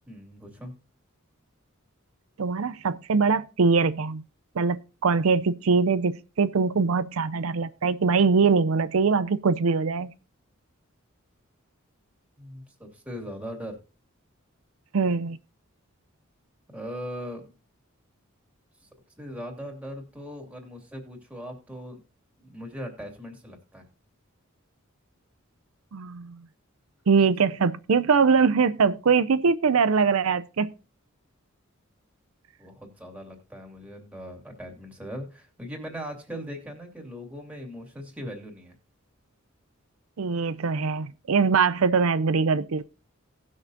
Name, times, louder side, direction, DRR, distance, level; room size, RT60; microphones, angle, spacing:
voice 1, 0.1-0.7 12.4-13.8 16.7-17.4 18.8-18.9 19.2-22.0 22.4-23.9 32.6-38.7, equal, 5° right, 2.6 m, -39 dB
voice 2, 2.4-4.2 4.6-10.1 14.9-15.4 25.9-26.4 27.1-30.7 40.2-42.8, right 5 dB, 75° right, 0.5 m, -22 dB
18.5 x 6.5 x 2.7 m
head